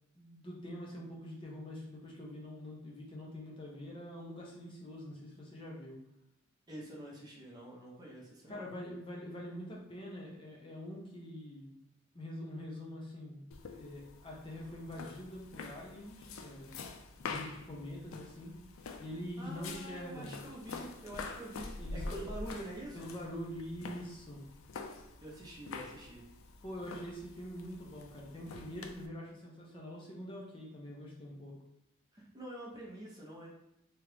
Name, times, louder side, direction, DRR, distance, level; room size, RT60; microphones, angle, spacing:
voice 1, 0.2-6.0 8.5-11.8 12.1-16.7 17.2-18.6 19.0-20.3 21.8-22.3 22.9-24.4 26.6-31.6, equal, 25° left, -3 dB, 0.5 m, -45 dB
voice 2, 6.7-8.7 19.4-23.0 25.2-26.2 32.1-33.5, right 1 dB, 20° right, -3 dB, 0.7 m, -46 dB
sound 1, 13.5-29.1, left 4 dB, 75° left, 0.4 m, -46 dB
2.8 x 2.4 x 3.2 m, 0.82 s
head